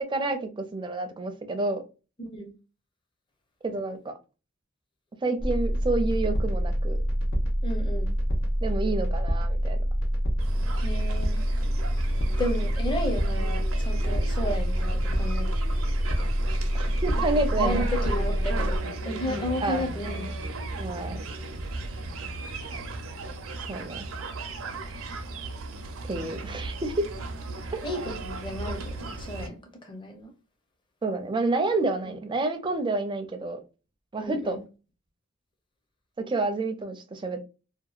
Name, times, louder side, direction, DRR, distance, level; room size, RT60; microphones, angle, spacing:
voice 1, 0.0-1.8 3.7-4.1 5.2-7.0 8.6-9.8 16.7-17.8 19.6-19.9 20.8-21.2 23.7-24.1 26.1-27.1 27.7-27.8 31.0-33.6 34.1-34.6 36.3-37.4, right 2 dB, 25° right, 0.4 m, -29 dB
voice 2, 2.2-2.5 7.6-8.1 10.8-11.4 12.4-15.5 17.6-18.8 19.1-20.3 27.8-30.3 32.0-32.1 34.2-34.6, equal, 25° left, 0.6 m, -33 dB
sound 1, 5.4-18.8, equal, 85° left, 0.7 m, -26 dB
sound 2, 10.4-29.5, right 3 dB, 80° right, 0.5 m, -35 dB
2.7 x 2.2 x 2.3 m
head